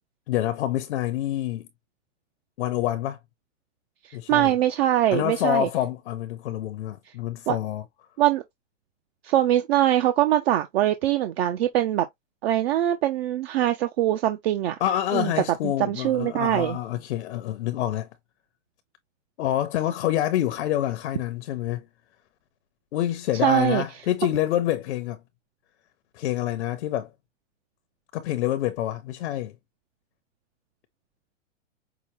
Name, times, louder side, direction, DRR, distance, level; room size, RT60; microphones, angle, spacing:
voice 1, 0.3-1.7 2.6-3.2 4.1-4.5 5.1-7.8 14.8-18.1 19.4-21.8 22.9-25.2 26.1-27.1 28.1-29.5, left 13 dB, 60° left, 0.8 m, -27 dB
voice 2, 4.3-5.7 7.5-7.6 8.2-8.4 9.2-12.1 12.4-14.8 15.1-15.3 15.6-16.8 23.4-23.8, right 13 dB, 50° right, 0.7 m, -22 dB
5.8 x 2.2 x 3.0 m
supercardioid pair, 155°, 39 cm